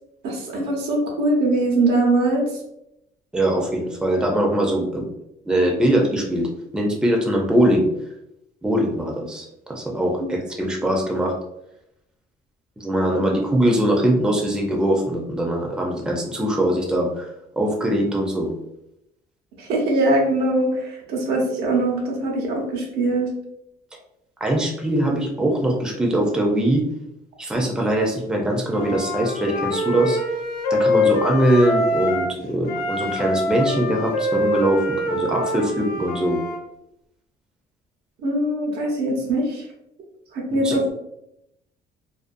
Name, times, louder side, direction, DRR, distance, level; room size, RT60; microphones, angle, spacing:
voice 1, 0.2-2.4 10.2-10.3 19.6-23.3 38.2-39.6 40.3-40.9, right 2 dB, 75° right, -1 dB, 0.8 m, -22 dB
voice 2, 3.3-5.1 5.4-7.9 8.6-11.3 12.8-17.3 17.6-18.5 24.4-26.8 27.4-30.2 30.7-36.4 40.5-40.9, right 1 dB, 5° right, 0 dB, 0.5 m, -22 dB
Wind instrument woodwind instrument, 28.7-32.4 32.6-36.6, left 1 dB, 65° left, 0.6 m, -24 dB
2.5 x 2.3 x 2.5 m, 0.82 s
cardioid pair, 110°, 17 cm